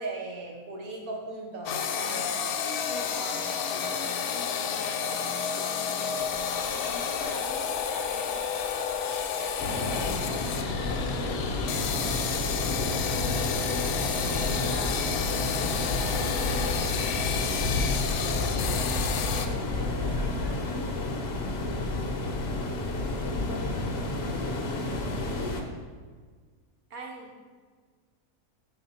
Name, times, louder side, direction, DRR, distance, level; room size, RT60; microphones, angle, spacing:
voice 1, 0.0-2.3 3.1-3.8 13.4-13.5 14.7-15.5 16.1-16.2 26.9-27.3, right 2 dB, 70° right, 2 dB, 1.4 m, -39 dB
sound 1, 1.7-19.5, left 7 dB, 85° left, 1.1 m, -31 dB
voice 2, 1.9-2.4 2.9-3.2 3.9-6.2 6.6-8.6 9.9-15.0 15.3-16.9 18.3-22.5 23.2-25.8, left 3 dB, 20° left, -3 dB, 0.6 m, -45 dB
sound 2, 6.2-23.9, left 2 dB, 25° right, 0.4 m, -52 dB
sound 3, 9.6-25.6, left 2 dB, 50° left, 0.8 m, -30 dB
4.9 x 4.6 x 5.6 m, 1.5 s
omnidirectional pair, 1.6 m